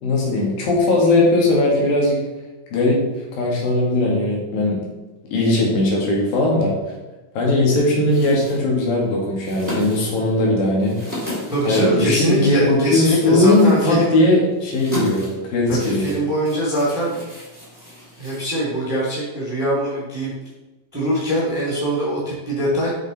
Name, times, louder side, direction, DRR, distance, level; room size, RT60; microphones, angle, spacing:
voice 1, 0.0-2.2 2.7-3.1 3.3-4.8 5.3-6.7 7.4-11.0 11.7-16.1, left 2 dB, 70° left, -3 dB, 3.6 m, -18 dB
sound 1, 8.0-18.9, left 1 dB, 10° left, 1.5 m, -36 dB
voice 2, 11.5-14.2 15.7-17.1 18.2-20.3 20.9-22.9, right 1 dB, 10° right, -6 dB, 2.1 m, -22 dB
8.6 x 5.8 x 4.2 m, 1.1 s
omnidirectional pair, 4.3 m